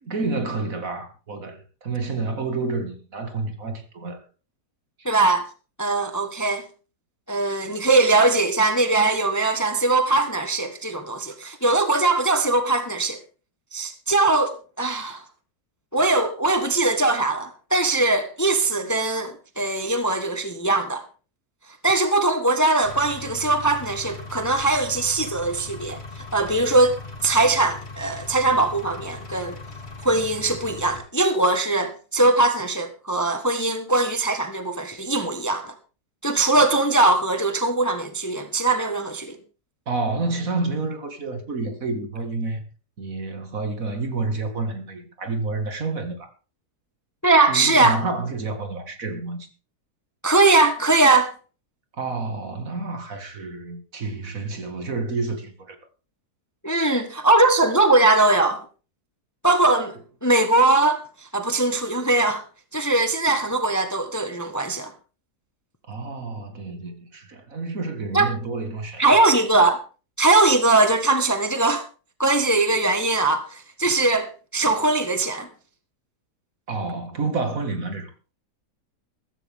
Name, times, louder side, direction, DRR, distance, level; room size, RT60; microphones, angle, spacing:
voice 1, 0.0-4.2 5.0-5.1 39.9-42.6 43.0-46.3 47.5-49.5 51.9-55.8 65.9-69.2 76.7-78.1, right 3 dB, 55° right, 2.4 m, -29 dB
voice 2, 5.0-5.4 5.8-6.6 7.3-13.2 13.7-15.2 15.9-21.0 21.8-26.0 26.3-27.0 27.2-29.6 30.0-35.7 36.2-39.3 47.2-48.0 50.2-51.3 56.6-58.6 59.4-62.4 62.7-64.9 68.1-68.3 69.0-69.8 70.2-71.8 72.2-75.5, right 2 dB, 10° left, 1.2 m, -21 dB
Engine, 22.8-31.0, left 3 dB, 40° left, 3.4 m, -39 dB
15.0 x 14.5 x 3.6 m
omnidirectional pair, 1.7 m